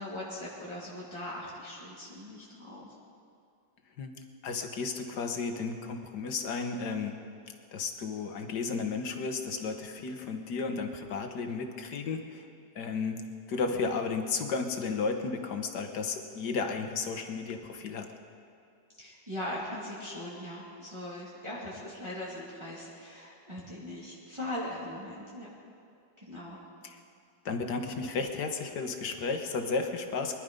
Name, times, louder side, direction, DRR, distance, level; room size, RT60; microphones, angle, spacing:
voice 1, 0.0-2.9 19.0-25.5 26.2-26.6, left 1 dB, 15° right, -6 dB, 2.4 m, -40 dB
voice 2, 4.4-7.2 7.7-12.4 12.8-13.2 13.5-18.1 26.8-27.0 27.5-30.4, left 4 dB, 80° left, 5 dB, 1.7 m, -33 dB
22.0 x 11.5 x 5.3 m, 2.4 s
omnidirectional pair, 1.8 m